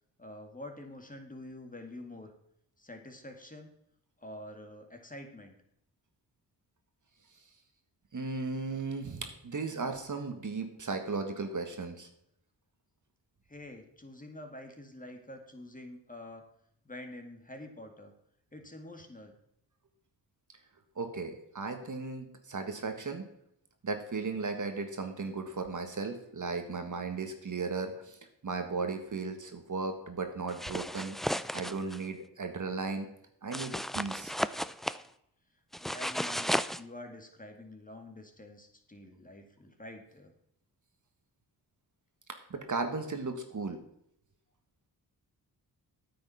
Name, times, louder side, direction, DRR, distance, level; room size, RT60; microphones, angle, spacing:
voice 1, 0.2-2.3 2.8-3.7 4.2-5.6 13.5-16.5 16.8-18.1 18.5-19.4 35.8-40.3, left 1 dB, 20° left, 4 dB, 2.2 m, -47 dB
voice 2, 8.1-12.1 20.9-23.3 23.8-31.1 31.5-33.1 33.4-34.3 42.5-43.8, right 4 dB, 45° right, 6 dB, 1.6 m, -36 dB
sound 1, 30.5-32.0 33.5-35.0 35.7-36.8, equal, ahead, 0.3 m, -34 dB
9.2 x 7.7 x 5.7 m, 0.76 s
cardioid pair, 50°, 41 cm